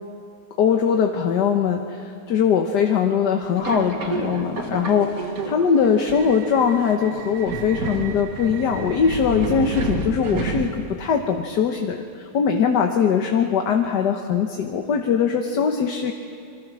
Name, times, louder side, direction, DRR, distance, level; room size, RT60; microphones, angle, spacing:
voice 1, 0.6-16.1, left 7 dB, 75° left, 4 dB, 1.7 m, -21 dB
Subway metro underground, 3.6-11.1, right 3 dB, 55° right, 2.0 m, -30 dB
28.0 x 23.5 x 6.3 m, 2.4 s
omnidirectional pair, 1.9 m